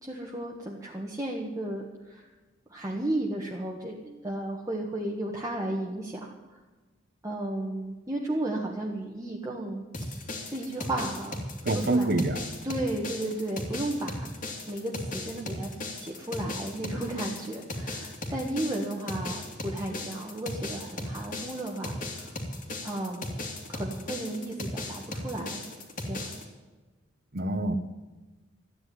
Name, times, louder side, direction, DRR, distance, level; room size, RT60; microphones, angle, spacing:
voice 1, 0.0-2.3 2.7-6.6 7.2-9.8 10.5-11.4 11.9-12.1 12.6-14.3 14.7-22.3 22.8-23.3 23.7-25.6 26.0-26.3, right 1 dB, 15° right, -2 dB, 1.5 m, -34 dB
sound 1, 9.9-26.4, left 1 dB, 45° left, 2.8 m, -37 dB
voice 2, 11.6-12.5 27.3-27.8, right 2 dB, 50° right, 11 dB, 1.1 m, -26 dB
14.0 x 9.9 x 9.4 m, 1.3 s
head